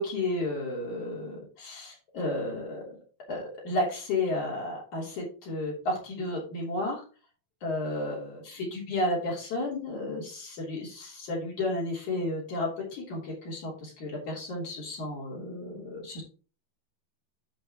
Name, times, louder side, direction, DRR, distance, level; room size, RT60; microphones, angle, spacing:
voice 1, 0.0-2.9 3.3-7.0 7.6-16.2, left 2 dB, 55° left, -3 dB, 4.7 m, -32 dB
8.9 x 7.8 x 3.1 m, 0.36 s
omnidirectional pair, 4.3 m